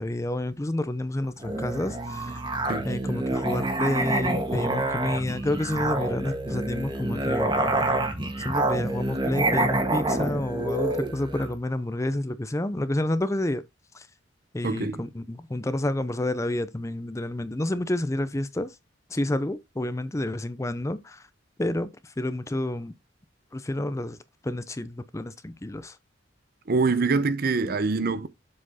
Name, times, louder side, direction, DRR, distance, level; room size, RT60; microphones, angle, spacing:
voice 1, 0.0-2.4 2.8-7.5 8.4-13.6 13.9-14.1 14.5-18.7 19.1-21.2 21.6-22.9 23.5-24.2 24.4-26.0, left 1 dB, 15° left, 0.5 m, -29 dB
Musical instrument, 1.4-11.6, right 2 dB, 25° right, 1.4 m, -27 dB
voice 2, 14.6-15.0 26.7-28.3, right 4 dB, 50° right, 0.6 m, -25 dB
7.5 x 4.3 x 4.1 m
head